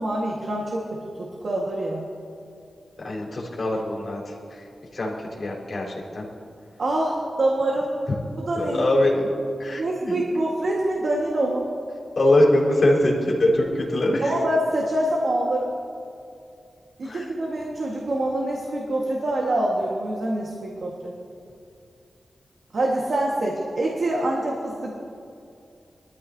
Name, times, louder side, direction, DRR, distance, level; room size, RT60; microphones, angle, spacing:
voice 1, 0.0-2.1 6.8-7.9 8.4-8.9 9.8-11.7 14.2-15.7 17.0-21.1 22.7-25.0, right 1 dB, 55° right, -2 dB, 1.6 m, -25 dB
voice 2, 3.0-4.2 4.9-6.2 8.6-9.3 9.6-10.2 12.2-14.3 17.1-17.2, left 1 dB, 45° left, -5 dB, 4.1 m, -22 dB
23.0 x 14.0 x 2.8 m, 2.6 s
wide cardioid pair, 165°, 0 cm